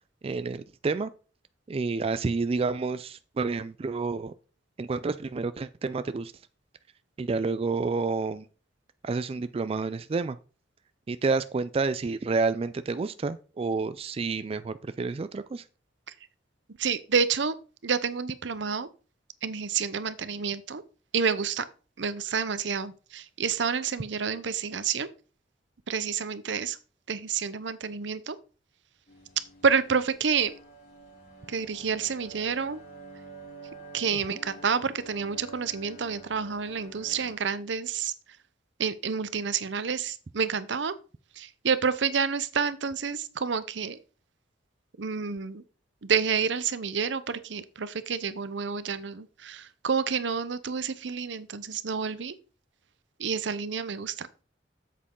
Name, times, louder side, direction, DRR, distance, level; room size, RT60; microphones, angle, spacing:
voice 1, 0.2-1.1 1.7-4.3 4.8-6.3 7.2-8.5 9.0-10.4 11.1-15.6 34.3-34.4, right 4 dB, 30° right, 0.3 m, -29 dB
voice 2, 16.8-17.6 17.8-18.9 19.4-20.8 21.1-21.7 22.0-25.1 25.9-26.8 27.1-28.4 29.6-30.5 31.5-32.8 33.9-38.1 38.8-40.9 41.4-44.0 45.0-45.6 46.0-52.3 53.2-54.4, right 6 dB, 75° right, 0.7 m, -29 dB
sound 1, 29.1-37.4, right 2 dB, 55° left, 5.2 m, -48 dB
8.3 x 7.5 x 3.7 m
head